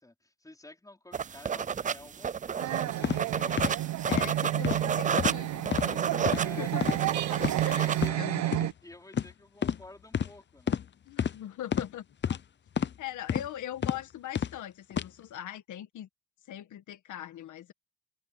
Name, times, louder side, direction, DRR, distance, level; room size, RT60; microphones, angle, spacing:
voice 1, 0.0-3.9 6.3-6.8 7.5-10.8, left 1 dB, 10° left, 4.9 m, -51 dB
sound 1, 1.1-8.1, right 7 dB, 25° right, 0.4 m, -31 dB
sound 2, 2.6-8.7, right 14 dB, 65° right, 0.6 m, -31 dB
sound 3, 3.0-3.2 3.6-3.7 4.1-4.3 4.6-4.8 5.2-5.4 5.7-5.9 6.3-6.4 6.8-7.0 7.4-7.6 8.0-8.1 8.5-8.7 9.1-9.3 9.6-9.8 10.1-10.3 10.7-10.8 11.2-11.4 11.7-11.9 12.2-12.4 12.8-13.0 13.3-13.5 13.8-14.0 14.4-14.5 14.9-15.1, left 8 dB, 35° left, 0.7 m, -29 dB
voice 2, 3.3-3.8 4.1-6.9 7.3-8.7 11.1-12.4 13.0-16.1 16.5-17.7, left 12 dB, 75° left, 1.7 m, -41 dB
cardioid pair, 90°, 30 cm